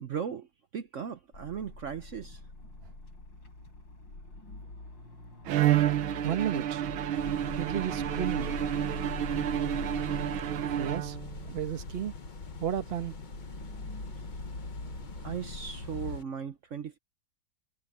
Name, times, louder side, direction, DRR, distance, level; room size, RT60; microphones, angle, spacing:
voice 1, 0.0-2.4 15.2-17.0, right 7 dB, 65° right, 0.7 m, -37 dB
sound 1, 1.3-16.2, left 2 dB, 60° left, 8.2 m, -42 dB
Bowed string instrument, 5.5-11.5, right 12 dB, 85° right, 1.8 m, -30 dB
voice 2, 6.2-6.8 7.6-8.6 10.7-11.2 11.5-12.1 12.6-13.2, right 9 dB, 35° right, 1.2 m, -33 dB
sound 2, 7.1-16.2, left 6 dB, 40° left, 0.6 m, -47 dB
omnidirectional pair, 2.3 m